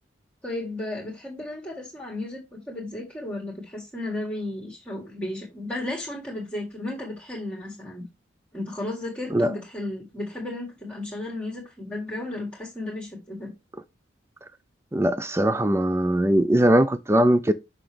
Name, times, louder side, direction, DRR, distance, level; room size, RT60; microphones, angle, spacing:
voice 1, 0.4-8.0 8.5-13.5, left 1 dB, 5° left, 1.7 m, -34 dB
voice 2, 14.9-17.5, right 1 dB, 15° right, 0.4 m, -20 dB
6.0 x 5.9 x 3.3 m
head